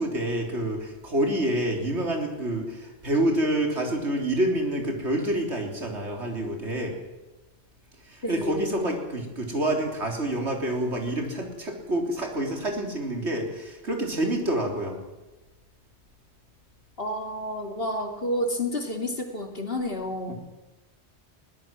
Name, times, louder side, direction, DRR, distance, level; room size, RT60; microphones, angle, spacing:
voice 1, 0.0-7.0 8.0-15.0 20.3-20.4, right 1 dB, 80° right, 2 dB, 4.0 m, -27 dB
voice 2, 8.2-8.8 17.0-20.3, left 1 dB, 60° left, 4 dB, 3.1 m, -30 dB
21.5 x 17.0 x 7.7 m, 1.1 s
omnidirectional pair, 1.1 m